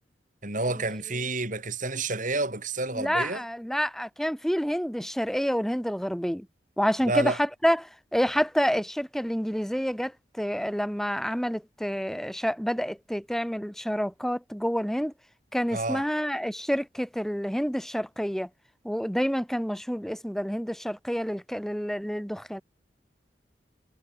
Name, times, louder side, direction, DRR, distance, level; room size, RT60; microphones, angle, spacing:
voice 1, 0.4-3.4 7.1-7.4 15.7-16.1, right 2 dB, 45° right, 7.7 m, -29 dB
voice 2, 2.9-6.5 6.8-10.1 10.4-15.1 15.5-18.5 18.8-22.6, equal, ahead, 3.4 m, -28 dB
head